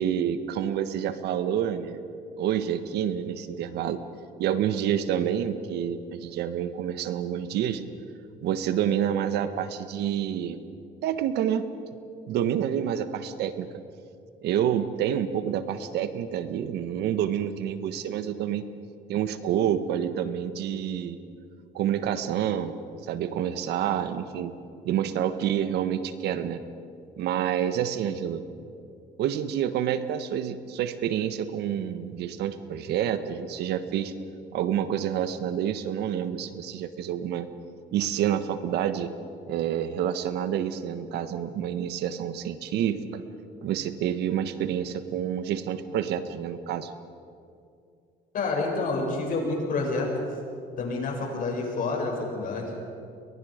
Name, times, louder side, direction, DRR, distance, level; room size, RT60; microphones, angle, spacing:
voice 1, 0.0-2.0 2.4-4.0 4.4-7.8 8.4-10.6 11.0-11.7 12.3-13.7 14.4-18.7 19.1-21.2 21.7-22.7 23.1-24.5 24.8-26.6 27.2-28.4 29.2-34.1 34.5-37.5 37.9-39.1 39.5-43.2 43.6-46.9, right 9 dB, 80° right, 10 dB, 1.4 m, -28 dB
voice 2, 48.3-50.3 50.8-52.7, left 3 dB, 55° left, 0 dB, 7.4 m, -28 dB
30.0 x 23.0 x 5.2 m, 2.5 s
cardioid pair, 110°, 17 cm